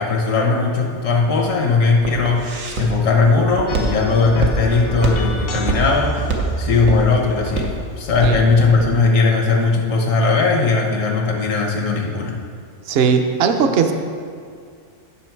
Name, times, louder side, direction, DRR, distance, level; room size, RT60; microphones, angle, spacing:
voice 1, 0.0-7.7 8.0-12.4, left 4 dB, 80° left, 1 dB, 1.5 m, -18 dB
Walk footsteps, 0.8-9.0, right 3 dB, 85° right, 1.3 m, -25 dB
Engine, 2.6-8.4, right 3 dB, 15° left, 0.4 m, -31 dB
sound 1, 3.7-9.1, left 5 dB, 60° left, 0.7 m, -36 dB
voice 2, 12.9-13.9, right 6 dB, 55° right, 6 dB, 0.8 m, -18 dB
9.9 x 6.1 x 4.6 m, 2.2 s
omnidirectional pair, 1.3 m